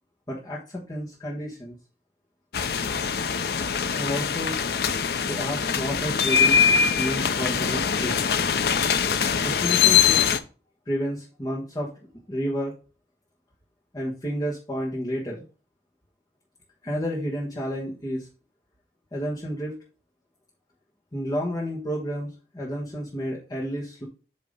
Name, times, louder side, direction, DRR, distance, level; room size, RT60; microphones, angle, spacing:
voice 1, 0.3-1.8 3.9-4.6 5.2-6.6 6.9-8.3 9.4-10.2 10.9-11.9 12.3-12.7 13.9-15.4 16.8-18.3 19.1-19.8 21.1-24.0, equal, 20° left, -4 dB, 1.2 m, -30 dB
sound 1, 2.5-10.4, left 7 dB, 60° left, 0.5 m, -23 dB
8.4 x 2.9 x 5.2 m, 0.35 s
head